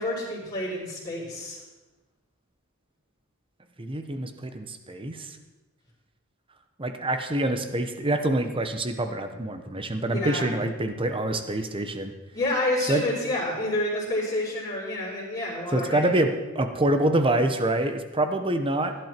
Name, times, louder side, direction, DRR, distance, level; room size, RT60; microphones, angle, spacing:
voice 1, 0.0-1.6 10.1-10.5 12.3-16.1, left 1 dB, 20° left, -13 dB, 5.2 m, -29 dB
voice 2, 3.8-5.4 6.8-12.1 12.9-13.0 15.7-19.0, right 1 dB, 25° right, 7 dB, 1.1 m, -26 dB
17.0 x 11.5 x 4.6 m, 1.1 s
head